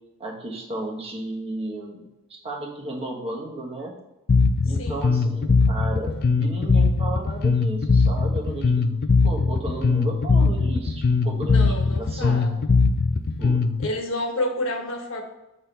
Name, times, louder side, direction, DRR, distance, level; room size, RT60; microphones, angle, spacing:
voice 1, 0.2-2.0 2.3-3.9 4.6-6.1 6.4-9.0 9.2-12.7 13.4-13.6, right 1 dB, 30° right, -3 dB, 1.4 m, -33 dB
Bass guitar, 4.3-13.9, left 4 dB, 45° left, 0.4 m, -20 dB
voice 2, 11.4-12.5 13.8-15.2, left 1 dB, 65° left, 2 dB, 1.3 m, -29 dB
7.8 x 4.3 x 3.4 m, 0.94 s
head